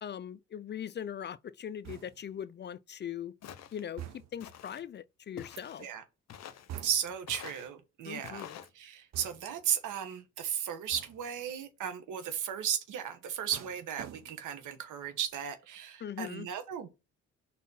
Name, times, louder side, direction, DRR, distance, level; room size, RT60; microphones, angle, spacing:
voice 1, 0.0-3.3 3.7-4.0 4.3-5.9 8.1-8.6 16.0-16.5, left 9 dB, 35° left, 0.4 m, -40 dB
sound 1, 1.8-2.4 4.0-4.6 6.7-7.3 9.1-9.7 10.9-11.4 13.5-14.6 15.0-15.4, right 11 dB, 60° right, 0.9 m, -47 dB
Walk footsteps, 3.4-3.9 4.4-4.8 5.4-5.9 6.3-6.7 7.3-7.7 8.2-8.7, left 9 dB, 60° left, 0.8 m, -47 dB
voice 2, 6.8-8.4 8.7-16.9, right 9 dB, 80° right, 1.4 m, -35 dB
4.2 x 4.1 x 5.6 m
cardioid pair, 90°, 30 cm